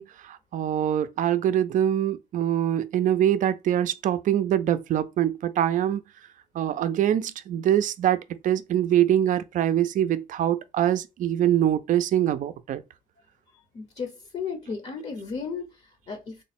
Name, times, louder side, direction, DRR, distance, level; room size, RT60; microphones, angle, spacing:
voice 1, 0.0-6.0 6.5-12.8, right 11 dB, 50° right, 0.4 m, -24 dB
voice 2, 13.7-16.4, left 5 dB, 40° left, 0.7 m, -35 dB
3.6 x 2.0 x 4.1 m
cardioid pair, 110°, 17 cm